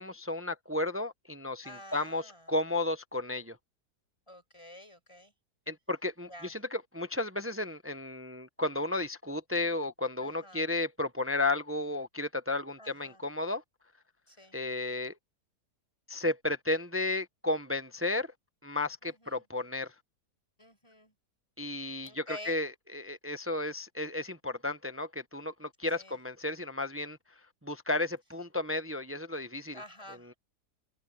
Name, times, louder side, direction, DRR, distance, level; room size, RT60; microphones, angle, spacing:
voice 1, 0.0-3.6 5.7-13.6 14.5-15.2 16.1-18.3 18.6-19.9 21.6-27.2 27.6-29.8 30.2-30.3, left 2 dB, 20° right, 0.3 m, -33 dB
voice 2, 1.6-2.5 4.3-5.3 6.3-6.5 10.2-10.6 12.8-13.2 14.3-14.5 19.0-19.4 20.6-21.1 22.0-22.6 25.9-26.1 29.7-30.3, equal, 15° left, 6.8 m, -49 dB
open air
omnidirectional pair, 1.8 m